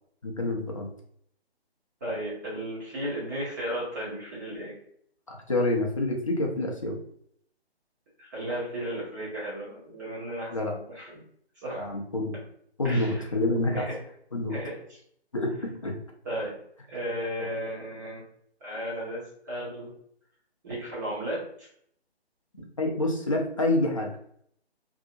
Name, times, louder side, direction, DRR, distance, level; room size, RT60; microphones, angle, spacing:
voice 1, 0.2-0.9 5.3-7.0 10.5-10.7 11.8-12.4 12.8-13.9 14.3-14.6 15.3-15.9 22.8-24.1, left 2 dB, 30° left, 0 dB, 0.4 m, -27 dB
voice 2, 2.0-4.7 8.2-11.1 11.6-11.9 12.8-13.2 13.7-14.0 14.5-14.7 16.2-16.5 16.9-18.2 18.6-19.9 20.6-21.7, equal, 15° right, -8 dB, 0.8 m, -34 dB
2.7 x 2.7 x 2.5 m, 0.66 s
figure-of-eight pair, 145°, 33 cm